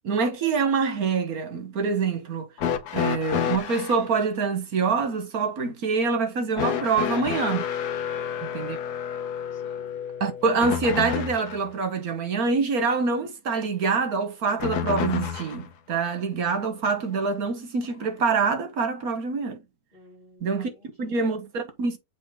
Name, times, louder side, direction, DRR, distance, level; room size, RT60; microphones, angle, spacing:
voice 1, 0.0-2.5 2.9-7.7 8.5-8.8 10.2-19.6 20.4-20.7 21.0-22.0, right 4 dB, 70° right, 1.8 m, -25 dB
sound 1, 2.6-4.0 6.6-11.7 14.6-15.7 16.9-17.0 18.0-18.1, left 8 dB, 80° left, 1.5 m, -29 dB
voice 2, 8.1-8.6 9.5-9.9 19.9-21.3, equal, 25° right, 4.5 m, -54 dB
7.4 x 3.8 x 3.7 m
omnidirectional pair, 1.7 m